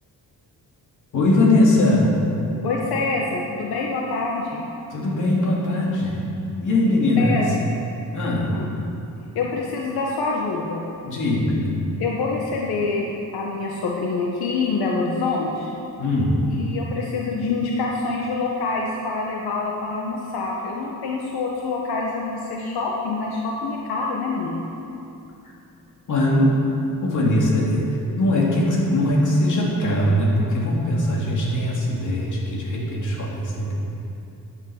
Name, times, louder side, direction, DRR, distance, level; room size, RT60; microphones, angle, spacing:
voice 1, 1.1-2.1 4.9-6.2 6.6-7.4 8.1-8.5 11.0-11.6 16.0-16.4 26.1-26.5 27.0-27.8 28.2-33.7, left 1 dB, 55° left, -4 dB, 2.8 m, -20 dB
voice 2, 2.6-4.7 7.2-7.4 8.5-8.7 9.3-10.8 12.0-13.1 13.3-15.7 16.5-24.6, left 3 dB, 85° left, -2 dB, 1.2 m, -26 dB
9.8 x 9.2 x 7.3 m, 2.8 s
wide cardioid pair, 180°, 37 cm